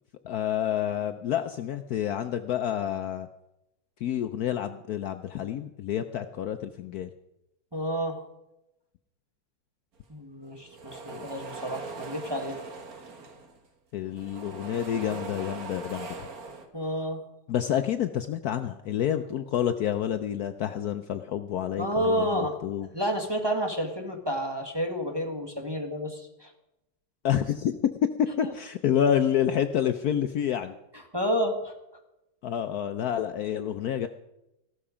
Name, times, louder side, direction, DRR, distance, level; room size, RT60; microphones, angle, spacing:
voice 1, 0.2-3.3 4.0-7.1 11.1-11.3 13.9-16.3 17.5-22.9 27.2-27.8 28.0-30.7 32.4-34.1, left 9 dB, 85° left, 9 dB, 0.8 m, -28 dB
voice 2, 7.7-8.2 10.1-12.6 16.7-17.2 21.8-22.6 22.9-26.5 28.4-28.5 31.1-31.7, equal, 15° right, 2 dB, 1.2 m, -30 dB
sound 1, 10.5-13.7 14.0-16.6, right 4 dB, 45° right, 1.7 m, -41 dB
15.0 x 12.5 x 5.0 m, 0.91 s
omnidirectional pair, 2.4 m